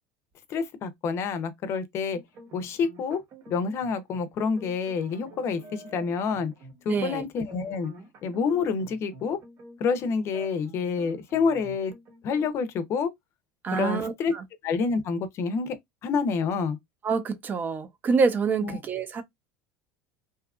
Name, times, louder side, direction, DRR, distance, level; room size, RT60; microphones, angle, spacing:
voice 1, 0.5-2.2 2.5-3.2 3.5-6.5 6.8-7.9 8.2-9.4 9.8-11.9 12.2-13.1 13.7-14.3 14.6-15.8 16.0-16.8 18.6-18.8, left 5 dB, 45° left, 0.6 m, -28 dB
sound 1, 2.1-12.5, right 2 dB, 45° right, 1.0 m, -49 dB
voice 2, 6.9-7.3 13.6-14.4 17.0-19.2, right 5 dB, 30° right, 0.6 m, -26 dB
2.7 x 2.4 x 2.4 m
supercardioid pair, 120°, 6 cm